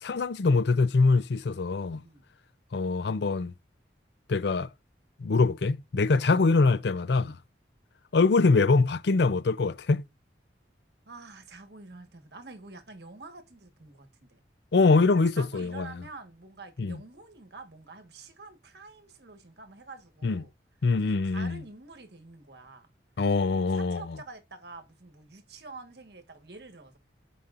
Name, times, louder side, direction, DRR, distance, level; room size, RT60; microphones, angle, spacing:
voice 1, 0.0-2.0 2.7-3.5 4.3-4.7 5.2-7.4 8.1-10.0 14.7-16.0 16.8-17.0 20.2-20.4 20.8-21.6 23.2-24.0, left 3 dB, 65° left, 0.5 m, -24 dB
voice 2, 5.9-6.4 7.1-7.3 11.0-14.4 15.3-20.5 21.0-22.9 23.8-27.0, right 3 dB, 60° right, 1.5 m, -47 dB
15.0 x 5.1 x 2.5 m
head